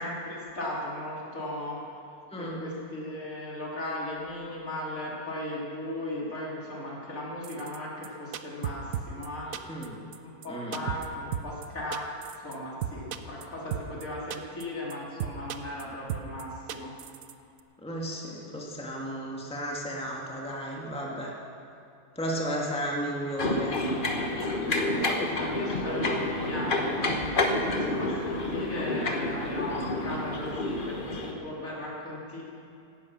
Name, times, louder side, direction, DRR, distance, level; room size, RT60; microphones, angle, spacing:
voice 1, 0.0-1.8 2.4-9.5 10.2-12.1 12.4-16.9 25.1-32.4, left 1 dB, 60° left, -5 dB, 3.5 m, -37 dB
voice 2, 2.3-2.7 9.5-10.0 10.5-10.8 17.8-21.3 22.1-23.8, equal, 5° left, -2 dB, 1.7 m, -34 dB
sound 1, 7.4-7.8 8.0-8.1 8.3-9.3 9.5-9.9 10.1-10.2 10.4-10.5 10.7-11.1 11.3-11.7 11.9-12.6 12.8-13.4 13.7-14.0 14.3-14.6 14.9-15.0 15.2-15.8 16.1-16.4 16.7-17.3 17.6-17.7, right 10 dB, 70° right, 1.1 m, -34 dB
sound 2, 23.4-31.3, left 2 dB, 35° left, 1.3 m, -29 dB
17.5 x 11.5 x 6.0 m, 2.5 s
omnidirectional pair, 1.6 m